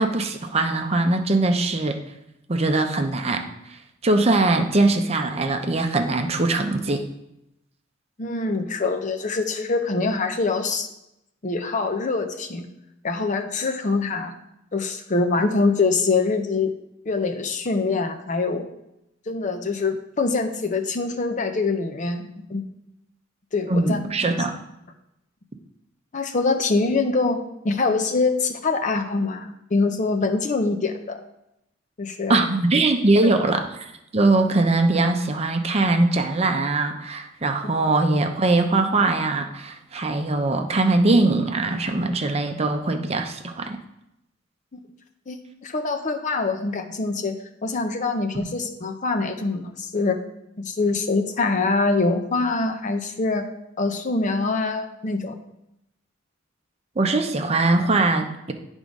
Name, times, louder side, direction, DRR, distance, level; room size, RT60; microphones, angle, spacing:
voice 1, 0.0-2.0 2.5-3.5 4.0-7.0 23.7-24.6 32.3-43.8 48.3-48.5 57.0-58.5, right 2 dB, 35° right, 5 dB, 0.6 m, -21 dB
voice 2, 8.2-10.9 11.4-12.7 13.0-14.3 14.7-16.7 17.1-18.7 19.3-22.6 23.5-24.0 24.3-24.4 26.1-31.2 32.0-32.4 45.3-45.4 45.6-47.4 47.6-50.2 50.6-53.5 53.8-55.4, left 3 dB, 40° left, 6 dB, 0.6 m, -24 dB
9.8 x 3.6 x 5.2 m, 0.85 s
head